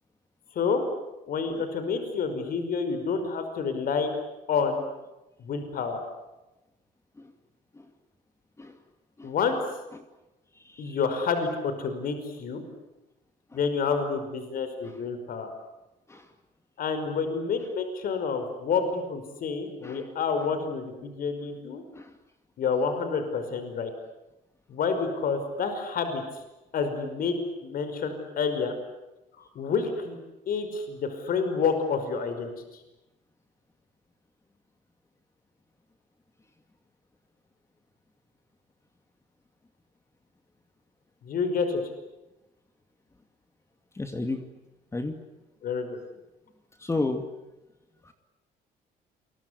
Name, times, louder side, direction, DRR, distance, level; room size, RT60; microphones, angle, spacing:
voice 1, 1.3-4.1 4.5-4.9 5.4-6.0 9.2-9.6 10.8-12.6 13.5-15.5 16.8-21.8 22.6-23.9 24.7-26.2 26.7-27.3 27.6-28.7 29.4-30.2 30.5-32.5 41.2-41.8 45.6-46.0, left 5 dB, 60° left, 8 dB, 5.5 m, -28 dB
voice 2, 10.7-11.0 16.1-16.2 19.8-20.0 22.0-22.1 44.0-44.4 44.9-45.2 46.8-47.2 48.1-48.2, left 2 dB, 15° left, 7 dB, 2.4 m, -32 dB
28.0 x 23.0 x 8.3 m, 1.0 s
cardioid pair, 110°, 17 cm